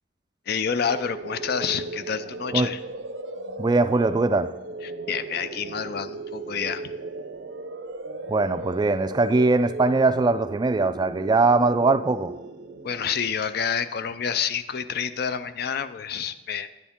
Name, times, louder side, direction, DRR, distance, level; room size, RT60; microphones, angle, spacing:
voice 1, 0.5-2.8 4.8-6.9 12.8-16.7, left 7 dB, 60° left, 13 dB, 0.4 m, -28 dB
sound 1, 0.9-13.7, right 3 dB, 85° right, 0.6 m, -37 dB
voice 2, 3.6-4.5 8.3-12.3, right 3 dB, 25° right, 11 dB, 0.3 m, -21 dB
10.0 x 9.6 x 3.6 m, 1.0 s
head